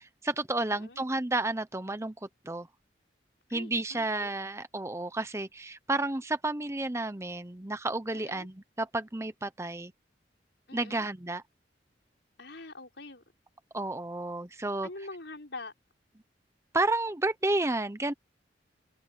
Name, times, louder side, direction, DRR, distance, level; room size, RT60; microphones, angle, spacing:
voice 1, 0.0-2.1 2.4-2.7 3.5-9.9 10.7-11.4 13.7-14.9 16.7-18.1, right 2 dB, 15° right, 0.8 m, -31 dB
voice 2, 0.7-1.0 3.5-4.3 8.1-8.5 10.7-11.1 12.4-13.2 14.8-15.7, left 2 dB, 75° left, 5.5 m, -44 dB
open air
head